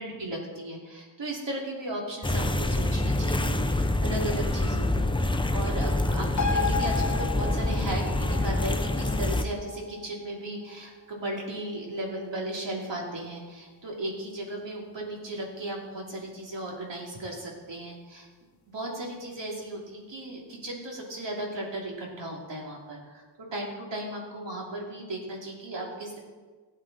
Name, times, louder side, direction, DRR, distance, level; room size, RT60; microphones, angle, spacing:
voice 1, 0.0-18.3 18.7-26.2, right 1 dB, 70° right, -2 dB, 2.8 m, -36 dB
sound 1, 2.2-9.4, left 1 dB, 10° left, 0.5 m, -26 dB
sound 2, 6.4-13.3 13.7-13.8, left 5 dB, 40° left, 1.1 m, -35 dB
15.0 x 9.1 x 4.1 m, 1.4 s
wide cardioid pair, 155°, 46 cm